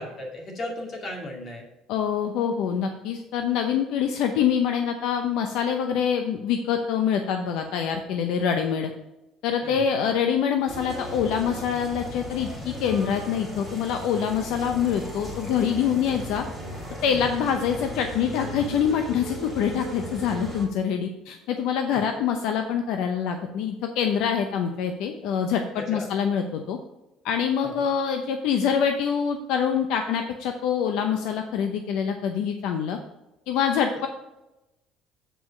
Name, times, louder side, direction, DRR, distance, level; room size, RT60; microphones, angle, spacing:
voice 1, 0.0-1.6 9.6-9.8 17.1-17.3 21.9-22.0 25.8-26.1 27.6-27.9, left 1 dB, 40° left, 0 dB, 2.3 m, -36 dB
voice 2, 1.9-8.9 9.4-16.5 17.0-26.8 27.2-33.0 33.5-34.1, left 7 dB, 75° left, 5 dB, 0.7 m, -25 dB
sound 1, 10.7-20.7, equal, 15° left, 2.8 m, -36 dB
7.8 x 4.8 x 5.2 m, 0.97 s
cardioid pair, 140°, 0 cm